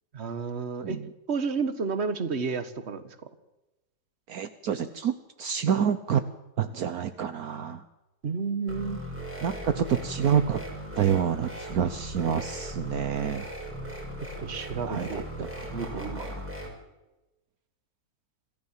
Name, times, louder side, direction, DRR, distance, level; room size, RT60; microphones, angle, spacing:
voice 1, 0.1-1.0 1.3-3.0 8.2-9.0 14.4-15.2 15.7-16.3, right 5 dB, 45° right, 11 dB, 1.6 m, -31 dB
voice 2, 4.3-5.1 5.4-6.2 6.6-7.8 9.4-10.6 11.0-13.4 14.9-16.5, right 8 dB, 70° right, 11 dB, 1.3 m, -28 dB
sound 1, 8.7-16.7, equal, 5° right, 5.6 m, -38 dB
26.5 x 14.5 x 7.5 m, 1.0 s
omnidirectional pair, 1.7 m